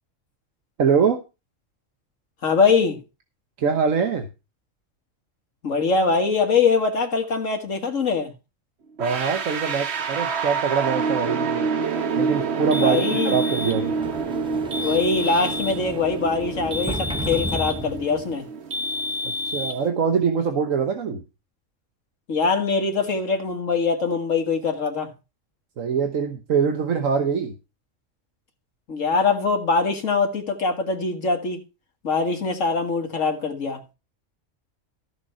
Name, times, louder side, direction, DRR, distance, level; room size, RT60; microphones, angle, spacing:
voice 1, 0.8-1.2 3.6-4.3 9.0-11.6 12.1-13.9 19.2-21.2 25.8-27.5, right 6 dB, 85° right, 1.5 m, -23 dB
voice 2, 2.4-3.0 5.6-8.3 12.8-13.4 14.8-18.5 22.3-25.1 28.9-31.6 32.0-33.8, left 4 dB, 80° left, 2.0 m, -23 dB
sound 1, 9.0-19.9, right 5 dB, 60° right, 1.3 m, -27 dB
sound 2, 12.7-13.8 14.7-15.8 16.7-17.9 18.7-19.8, left 2 dB, 40° right, 1.3 m, -30 dB
Sliding door, 13.7-18.4, right 1 dB, 5° right, 0.7 m, -35 dB
14.0 x 6.8 x 4.3 m
omnidirectional pair, 1.3 m